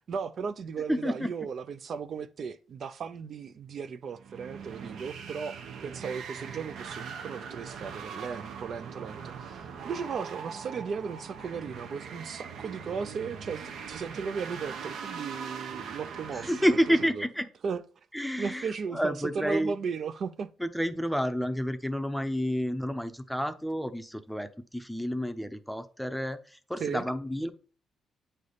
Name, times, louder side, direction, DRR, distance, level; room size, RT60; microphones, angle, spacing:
voice 1, 0.0-16.5 17.1-17.2 17.6-17.8 18.4-20.5 26.8-27.0, right 6 dB, 55° right, 0.4 m, -36 dB
voice 2, 0.9-1.3 16.3-17.5 18.1-19.7 20.6-27.5, equal, ahead, 0.6 m, -30 dB
sound 1, 4.1-17.0, right 6 dB, 75° right, 0.8 m, -41 dB
8.5 x 3.3 x 4.0 m
cardioid pair, 90°, 0 cm